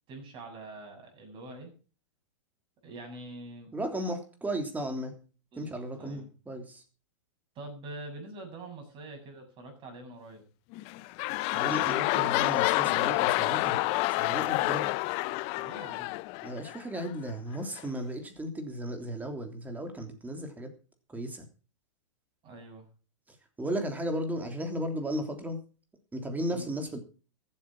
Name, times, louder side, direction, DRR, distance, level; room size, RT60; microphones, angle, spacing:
voice 1, 0.1-1.7 2.8-3.7 5.5-6.3 7.5-10.4 15.5-16.1 22.4-22.9 26.5-26.7, right 2 dB, 30° right, 3 dB, 7.4 m, -45 dB
voice 2, 3.7-5.1 5.6-6.8 11.5-13.8 14.2-14.9 16.4-20.7 21.1-21.5 23.3-25.6 26.1-27.0, right 1 dB, 10° right, 5 dB, 3.2 m, -35 dB
sound 1, 10.7-17.1 17.8-17.9, left 22 dB, 40° left, 0.6 m, -28 dB
14.5 x 8.7 x 6.1 m, 0.37 s
hypercardioid pair, 115°, 16 cm